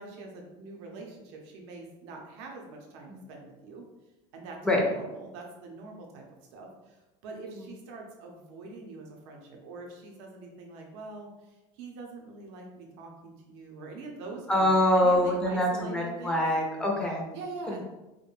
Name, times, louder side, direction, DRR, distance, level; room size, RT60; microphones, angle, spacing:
voice 1, 0.0-3.9 4.3-6.2 6.5-16.4 17.3-17.8, right 3 dB, 75° right, 0 dB, 0.6 m, -44 dB
voice 2, 14.5-17.2 17.7-17.8, left 1 dB, 5° left, -1 dB, 0.3 m, -25 dB
2.4 x 2.1 x 3.0 m, 1.0 s
cardioid pair, 165°, 15 cm